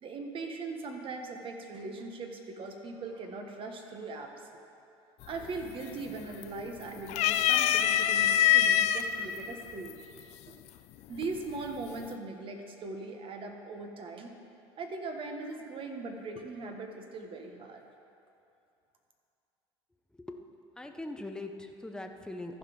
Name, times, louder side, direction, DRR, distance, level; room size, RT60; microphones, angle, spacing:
voice 1, 0.0-4.5 5.3-10.0 10.5-10.6 11.1-14.3 14.8-17.8, right 3 dB, 45° right, 4 dB, 1.3 m, -40 dB
sound 1, 5.2-5.6 6.0-6.7 7.1-9.0 9.9-10.0 11.2-11.7, left 11 dB, 60° left, 0.5 m, -24 dB
voice 2, 20.8-22.6, left 2 dB, 5° left, 5 dB, 0.8 m, -41 dB
14.5 x 5.1 x 5.2 m, 2.6 s
supercardioid pair, 85°, 13 cm